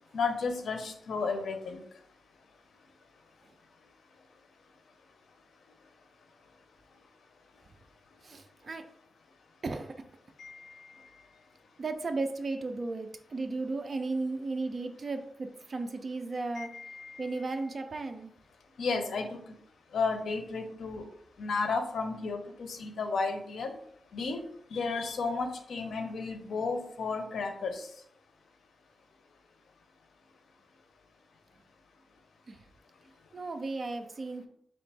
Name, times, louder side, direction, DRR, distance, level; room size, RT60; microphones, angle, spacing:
voice 1, 0.1-1.8 10.4-11.1 16.6-17.3 18.8-19.4 19.9-21.1 21.4-23.7 24.1-24.4 24.7-27.9, left 4 dB, 85° left, 6 dB, 0.6 m, -33 dB
voice 2, 8.2-8.9 9.6-10.0 11.8-16.8 17.2-18.3 32.5-32.6 33.3-34.5, right 3 dB, 45° right, 6 dB, 0.4 m, -35 dB
4.0 x 3.0 x 3.3 m, 0.68 s
wide cardioid pair, 90°, 0 cm